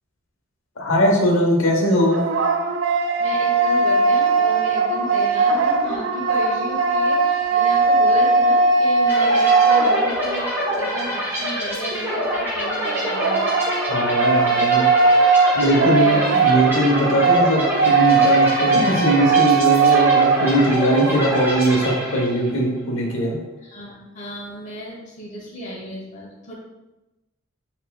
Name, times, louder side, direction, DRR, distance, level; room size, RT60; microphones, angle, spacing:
voice 1, 0.8-2.2 13.9-14.9 15.5-23.4, equal, 85° left, -1 dB, 1.0 m, -20 dB
sound 1, 1.8-10.5 12.8-20.6, right 4 dB, 65° right, 0.4 m, -19 dB
voice 2, 3.2-13.5 14.4-14.6 15.8-16.3 19.8-20.3 20.7-21.0 23.6-26.5, equal, 35° left, -3 dB, 1.1 m, -33 dB
sound 2, 9.1-22.6, equal, 10° right, 0.9 m, -26 dB
4.2 x 3.8 x 2.3 m, 1.0 s
head